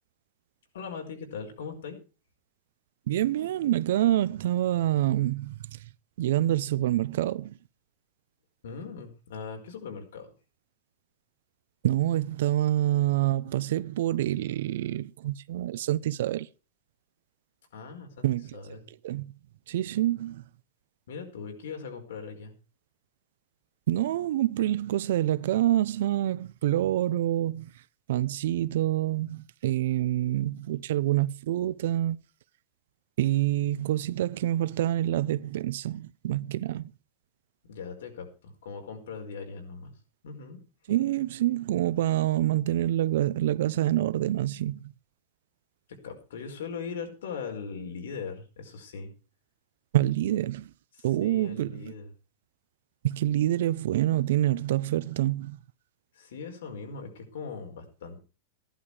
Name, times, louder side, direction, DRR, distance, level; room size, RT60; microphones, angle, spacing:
voice 1, 0.7-2.0 8.6-10.3 17.7-18.3 18.5-18.9 21.1-22.5 37.6-39.9 40.2-40.6 45.9-49.1 51.0-52.1 56.1-58.2, left 5 dB, 85° left, 4.8 m, -40 dB
voice 2, 3.1-5.8 6.2-7.6 11.8-16.5 18.2-18.6 19.0-19.3 19.7-20.4 23.9-27.7 28.1-32.2 33.2-36.9 40.9-44.8 49.9-50.7 51.0-51.9 53.0-55.6, right 13 dB, 60° right, 0.6 m, -26 dB
15.0 x 11.5 x 4.9 m
supercardioid pair, 175°, 0 cm